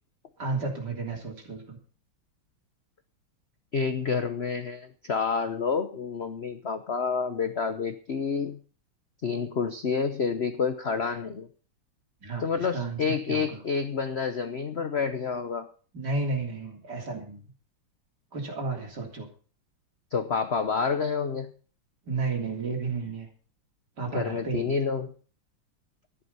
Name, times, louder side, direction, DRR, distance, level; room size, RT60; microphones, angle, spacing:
voice 1, 0.4-1.8 12.2-13.6 15.9-17.4 18.3-19.3 22.1-23.3 24.0-24.7, right 3 dB, 50° right, 1 dB, 3.8 m, -32 dB
voice 2, 3.7-8.6 9.2-11.5 12.4-15.7 20.1-21.5 24.1-25.1, left 5 dB, 55° left, 9 dB, 0.7 m, -29 dB
13.0 x 11.0 x 5.5 m, 0.39 s
omnidirectional pair, 2.3 m